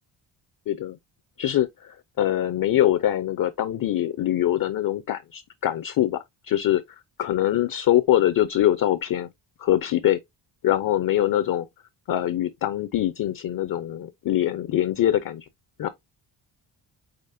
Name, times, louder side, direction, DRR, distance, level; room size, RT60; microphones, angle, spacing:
voice 1, 0.7-1.0 1.4-6.2 6.5-6.8 7.2-9.3 9.6-10.2 10.6-11.7 12.1-15.5 15.8-15.9, left 12 dB, 45° left, 0.5 m, -23 dB
5.0 x 4.0 x 2.6 m
cardioid pair, 135°, 47 cm